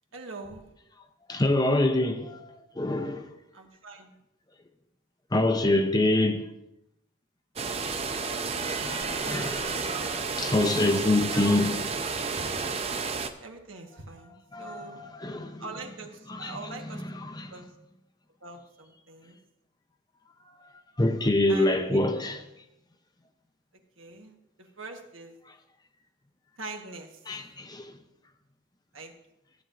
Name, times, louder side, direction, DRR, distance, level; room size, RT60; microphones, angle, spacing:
voice 1, 0.1-0.7 3.5-4.1 11.3-11.8 13.4-15.0 15.6-17.0 17.5-17.7 18.4-19.4 21.5-22.3 24.0-25.4 26.6-27.2 28.9-29.1, right 3 dB, 75° right, 1.3 m, -43 dB
voice 2, 1.3-3.3 5.3-6.5 8.8-11.7 12.0-12.3 14.5-15.6 16.3-16.6 17.2-17.5 21.0-22.4 27.3-27.9, left 2 dB, 20° left, 0.6 m, -26 dB
sound 1, 7.6-13.3, right 4 dB, 30° right, 0.5 m, -31 dB
15.0 x 9.0 x 2.5 m
head